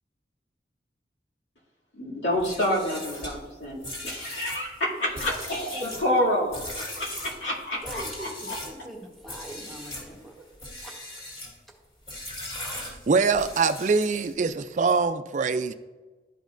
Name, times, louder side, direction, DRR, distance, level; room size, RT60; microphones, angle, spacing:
voice 1, 2.0-6.6 6.9-8.3, left 1 dB, 90° left, -5 dB, 2.4 m, -28 dB
sound 1, 2.3-8.8 9.2-10.1 10.5-11.6 12.1-14.5, left 1 dB, 35° left, 2.2 m, -39 dB
voice 2, 7.8-10.4 10.8-10.9, right 1 dB, ahead, -1 dB, 1.1 m, -42 dB
voice 3, 12.7-15.7, right 4 dB, 45° right, 11 dB, 0.3 m, -24 dB
12.0 x 5.2 x 2.5 m, 1.3 s
head